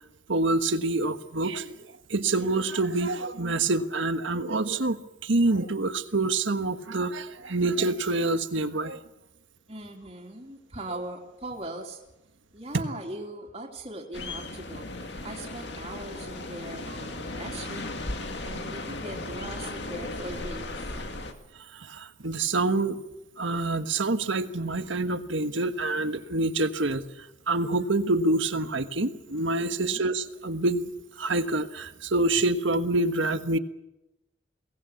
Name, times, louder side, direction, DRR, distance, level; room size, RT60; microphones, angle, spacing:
voice 1, 0.3-1.7 2.1-9.0 21.7-23.0 23.4-27.0 27.5-30.9 31.2-33.6, right 2 dB, 75° right, 9 dB, 1.4 m, -26 dB
voice 2, 9.7-12.0 12.5-14.9 15.2-17.8 18.4-20.9 29.7-30.0, right 1 dB, 30° right, -1 dB, 3.0 m, -40 dB
sound 1, 14.1-21.3, left 2 dB, 60° left, 2.2 m, -36 dB
22.5 x 18.5 x 8.5 m, 0.94 s
head